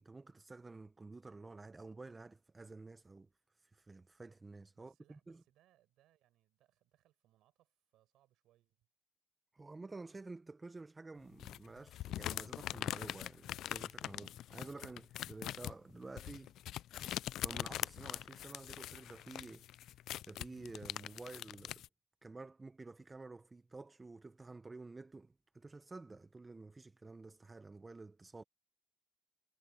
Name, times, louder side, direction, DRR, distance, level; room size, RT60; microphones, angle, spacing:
voice 1, 0.0-3.3 3.5-5.4 9.5-16.5 17.4-19.7 20.3-21.8 22.2-28.4, right 3 dB, 25° right, 0.8 m, -51 dB
voice 2, 4.7-8.9, right 14 dB, 80° right, 6.1 m, -74 dB
sound 1, 11.4-21.9, left 13 dB, 75° left, 0.4 m, -43 dB
supercardioid pair, 70°, 0 cm